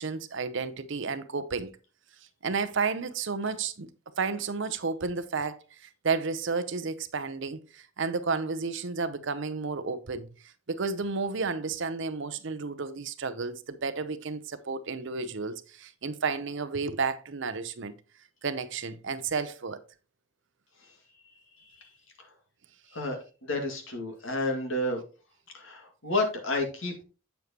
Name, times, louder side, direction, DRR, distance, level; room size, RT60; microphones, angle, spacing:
voice 1, 0.0-1.7 2.4-3.9 4.2-17.9 18.4-19.8, right 4 dB, 60° right, 0.7 m, -32 dB
voice 2, 21.6-21.9 22.2-22.3 22.9-25.0 25.5-27.0, left 2 dB, 65° left, 2.0 m, -31 dB
8.0 x 6.9 x 2.9 m
head